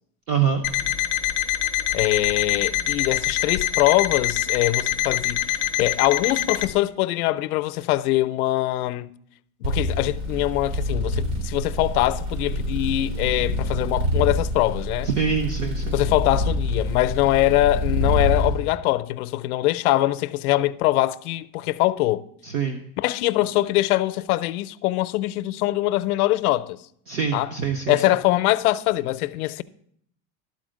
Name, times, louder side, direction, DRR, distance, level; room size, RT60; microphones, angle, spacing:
voice 1, 0.3-0.6 15.0-15.9 22.4-22.8 27.1-28.1, right 7 dB, 30° right, 0.4 m, -24 dB
Alarm, 0.6-6.7, left 13 dB, 40° left, 0.4 m, -25 dB
voice 2, 1.9-9.1 9.6-15.1 15.9-22.2 23.0-26.8 27.3-27.5 27.9-29.6, left 16 dB, 85° left, 0.6 m, -23 dB
sound 1, 9.6-18.5, left 1 dB, 75° right, 3.4 m, -26 dB
12.0 x 4.3 x 6.2 m
supercardioid pair, 170°, 43 cm